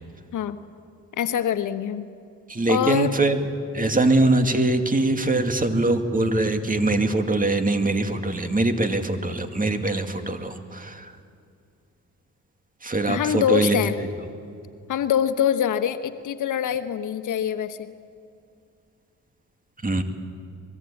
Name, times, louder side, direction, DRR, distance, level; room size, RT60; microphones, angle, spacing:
voice 1, 1.2-2.1 2.7-3.1 13.1-13.9 14.9-17.9, left 9 dB, 75° left, 10 dB, 1.3 m, -24 dB
voice 2, 2.5-3.4 3.7-11.1 12.8-14.1 19.8-20.0, right 2 dB, 25° right, 7 dB, 2.4 m, -22 dB
24.5 x 22.0 x 8.7 m, 2.4 s
cardioid pair, 70°, 32 cm